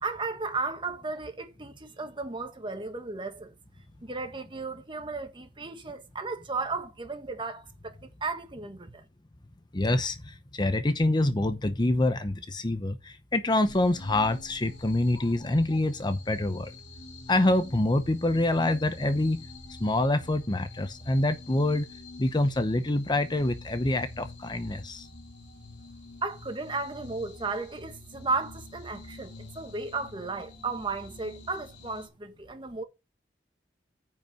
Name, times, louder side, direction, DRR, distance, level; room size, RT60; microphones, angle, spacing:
voice 1, 0.0-3.5 4.0-9.0 26.2-32.8, right 3 dB, 30° right, 1.6 m, -34 dB
voice 2, 9.7-16.7 17.3-19.5 19.8-21.9 22.2-25.1, left 1 dB, 25° left, 0.8 m, -26 dB
sound 1, 13.6-32.1, left 2 dB, 80° left, 2.7 m, -47 dB
9.6 x 5.3 x 5.5 m
head